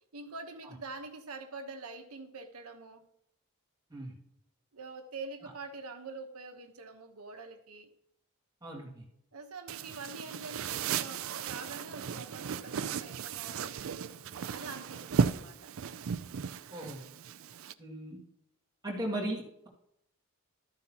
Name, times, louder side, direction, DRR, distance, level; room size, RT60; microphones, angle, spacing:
voice 1, 0.1-3.1 4.7-7.9 9.3-14.1 14.5-15.7, right 3 dB, 85° right, 1.1 m, -45 dB
voice 2, 8.6-9.0 16.7-17.0 17.8-18.2 18.8-19.7, right 1 dB, 20° right, 2.2 m, -37 dB
sound 1, 9.7-17.7, right 6 dB, 65° right, 0.4 m, -35 dB
13.0 x 9.4 x 2.9 m
head